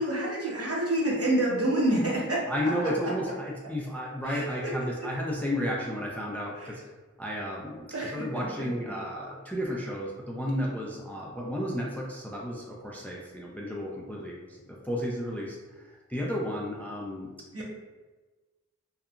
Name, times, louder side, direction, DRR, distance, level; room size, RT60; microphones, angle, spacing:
voice 1, 0.0-2.5 3.0-3.1 4.3-4.7 6.6-6.7 7.9-8.9 17.5-17.6, right 1 dB, 50° right, -4 dB, 0.7 m, -28 dB
voice 2, 2.5-6.8 7.2-17.3, equal, 5° left, -3 dB, 0.4 m, -33 dB
2.7 x 2.2 x 2.4 m, 1.3 s
wide cardioid pair, 45°, 30 cm